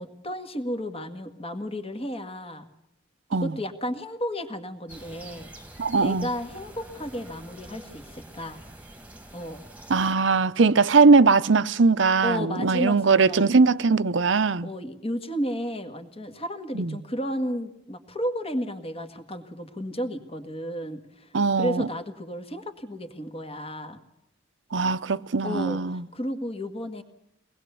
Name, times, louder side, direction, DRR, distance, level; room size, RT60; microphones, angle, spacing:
voice 1, 0.0-2.7 3.3-5.5 6.0-8.6 9.3-9.6 12.2-13.5 14.6-24.0 25.4-27.0, equal, 30° left, 1.8 m, -33 dB
sound 1, 4.9-10.2, right 1 dB, 10° right, 1.7 m, -46 dB
voice 2, 5.8-6.3 9.9-14.7 16.7-17.0 21.3-21.9 24.7-26.0, right 4 dB, 80° right, 0.7 m, -20 dB
23.5 x 19.5 x 7.0 m
head